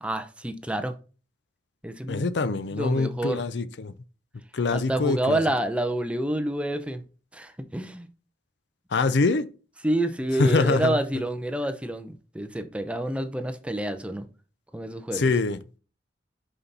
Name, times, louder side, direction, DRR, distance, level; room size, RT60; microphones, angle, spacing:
voice 1, 0.0-0.9 1.8-2.3 2.7-3.4 4.7-7.0 7.3-8.1 9.8-14.2 14.7-15.3, right 1 dB, 5° right, 0.7 m, -28 dB
voice 2, 2.1-3.9 4.5-5.4 8.9-9.5 10.4-11.0 15.1-15.6, left 3 dB, 70° left, 0.5 m, -24 dB
5.6 x 5.6 x 4.1 m
head